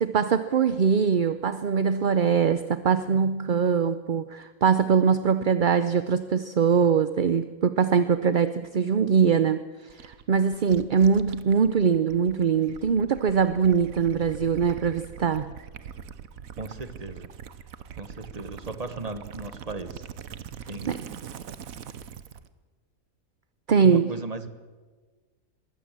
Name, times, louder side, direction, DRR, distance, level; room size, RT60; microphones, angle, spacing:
voice 1, 0.0-9.6 10.0-15.5 20.9-21.0 23.7-24.1, right 6 dB, 45° right, 13 dB, 0.7 m, -22 dB
Gurgling / Liquid, 9.9-22.5, right 8 dB, 80° right, 1.4 m, -42 dB
voice 2, 16.6-17.3 18.0-20.1 20.7-21.0 23.8-24.5, right 3 dB, 30° right, 11 dB, 1.3 m, -36 dB
21.5 x 16.5 x 7.5 m, 1.4 s
omnidirectional pair, 1.4 m